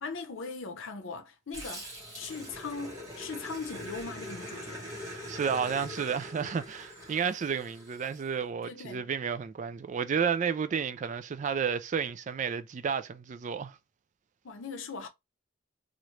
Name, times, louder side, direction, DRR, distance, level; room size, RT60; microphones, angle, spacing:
voice 1, 0.0-4.9 8.6-9.1 14.4-15.1, left 4 dB, 85° left, 0.7 m, -40 dB
Growling, 1.5-8.2, equal, 20° right, 1.6 m, -43 dB
voice 2, 5.1-13.8, right 6 dB, 40° right, 0.3 m, -31 dB
2.9 x 2.5 x 3.1 m
head